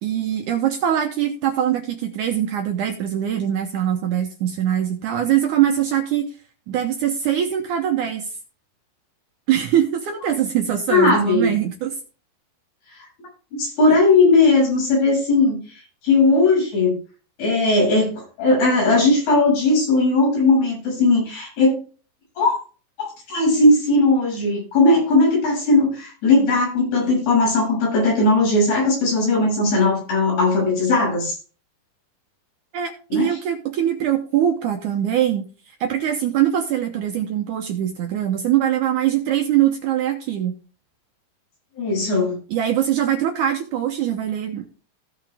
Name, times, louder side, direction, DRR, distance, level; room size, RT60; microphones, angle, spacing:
voice 1, 0.0-6.3 6.7-8.3 9.5-12.0 32.7-35.5 35.8-40.6 42.5-44.7, right 10 dB, 70° right, 4 dB, 2.0 m, -22 dB
voice 2, 10.9-11.5 12.9-13.1 13.5-15.6 16.0-17.0 17.4-21.8 22.4-22.6 23.0-31.4 33.1-33.4 41.8-42.4, left 2 dB, 85° left, -3 dB, 8.8 m, -18 dB
16.0 x 5.5 x 3.5 m, 0.37 s
omnidirectional pair, 4.4 m